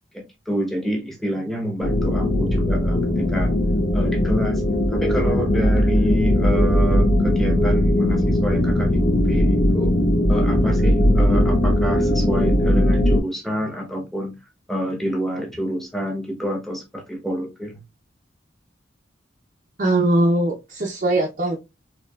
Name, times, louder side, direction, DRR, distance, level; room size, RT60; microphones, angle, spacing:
voice 1, 0.1-3.5 3.9-4.6 4.9-9.9 10.3-14.3 14.7-17.8, equal, ahead, 0.8 m, -28 dB
sound 1, 1.8-13.2, left 1 dB, 85° left, 1.1 m, -19 dB
voice 2, 19.8-21.6, right 2 dB, 45° right, 0.6 m, -20 dB
4.4 x 2.9 x 2.3 m
head